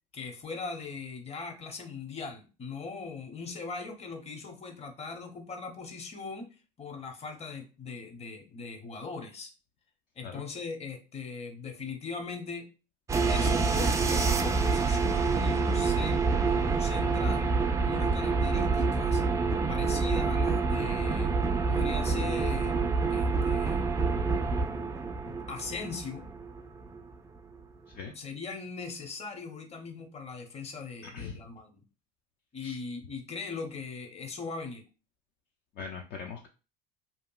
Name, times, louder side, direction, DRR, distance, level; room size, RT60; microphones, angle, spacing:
voice 1, 0.1-9.5 10.2-12.7 13.3-17.5 17.8-19.2 19.7-21.3 21.7-23.9 25.3-26.3 28.1-31.8 32.5-34.8, left 4 dB, 30° left, 5 dB, 0.8 m, -40 dB
sound 1, 13.1-27.0, right 4 dB, 15° right, 0.3 m, -27 dB
voice 2, 35.8-36.5, left 5 dB, 50° left, 3 dB, 0.4 m, -40 dB
2.8 x 2.5 x 2.3 m, 0.33 s
supercardioid pair, 80°, 21 cm